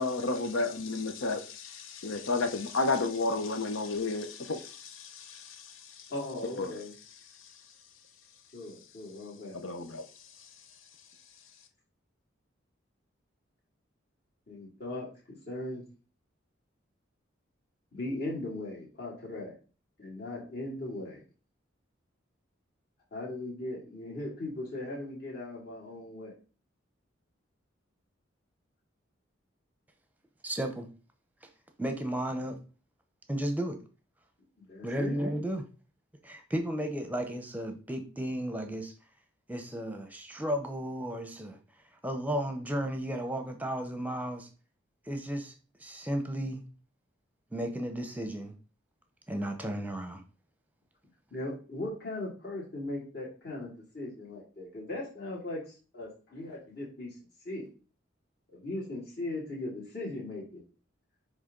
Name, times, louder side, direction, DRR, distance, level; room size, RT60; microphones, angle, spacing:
voice 1, 0.0-5.7 6.6-6.7 9.5-10.0, left 3 dB, 85° left, 0.9 m, -32 dB
voice 2, 6.1-6.9 8.5-9.6 14.5-15.1 15.5-15.8 17.9-19.6 20.0-21.3 23.1-26.3 34.6-35.2 51.3-55.6 55.9-57.1 57.4-57.7 58.5-60.6, left 2 dB, 50° left, 2.8 m, -38 dB
voice 3, 30.4-30.9 31.4-31.5 31.8-32.6 33.3-33.8 34.8-35.7 36.2-38.9 39.5-41.6 42.0-44.5 45.1-45.5 45.8-46.6 47.5-48.5 49.3-50.2, right 1 dB, 10° right, 0.7 m, -34 dB
9.7 x 3.4 x 3.8 m
head